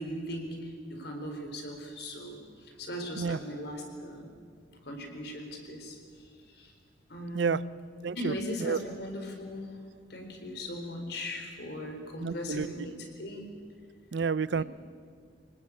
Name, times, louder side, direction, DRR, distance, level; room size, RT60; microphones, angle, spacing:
voice 1, 0.0-4.3 4.8-6.0 6.5-6.7 7.1-7.6 8.1-9.7 10.1-13.5 14.5-14.6, equal, 60° left, 4 dB, 4.2 m, -38 dB
voice 2, 8.0-8.3 8.6-8.8 12.2-12.9 14.1-14.6, right 5 dB, 70° right, 18 dB, 0.5 m, -29 dB
26.0 x 19.0 x 8.5 m, 2.1 s
head